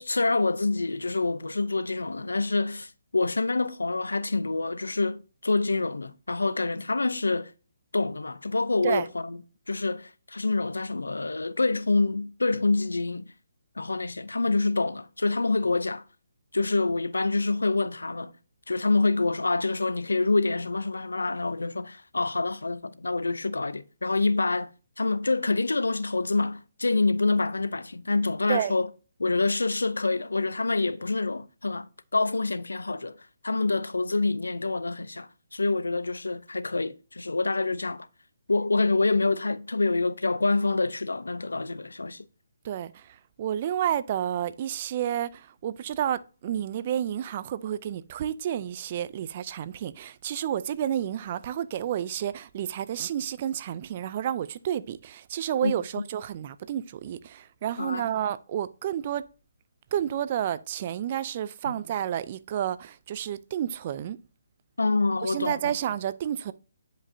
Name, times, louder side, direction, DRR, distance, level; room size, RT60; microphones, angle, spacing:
voice 1, 0.0-7.5 7.9-9.4 9.7-13.2 13.8-16.0 16.5-18.3 18.7-24.7 25.0-28.9 29.2-33.2 33.4-38.1 38.5-42.3 55.6-56.0 57.8-58.0 61.7-61.8 64.8-65.8, left 3 dB, 90° left, 0.5 m, -26 dB
voice 2, 42.6-59.2 59.9-64.2 65.2-66.5, right 10 dB, 35° right, 0.5 m, -30 dB
9.6 x 5.2 x 2.7 m
hypercardioid pair, 150°, 0 cm